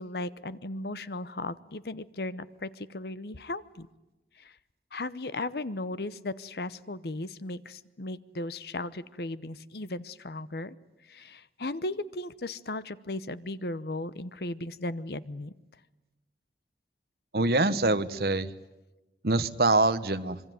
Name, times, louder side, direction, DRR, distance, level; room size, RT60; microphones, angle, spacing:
voice 1, 0.0-3.9 4.4-4.6 4.9-10.8 11.0-15.5, left 2 dB, 60° left, 16 dB, 0.9 m, -36 dB
voice 2, 17.3-18.5 19.2-20.4, right 2 dB, 60° right, 13 dB, 1.1 m, -24 dB
26.0 x 23.0 x 9.3 m, 1.0 s
head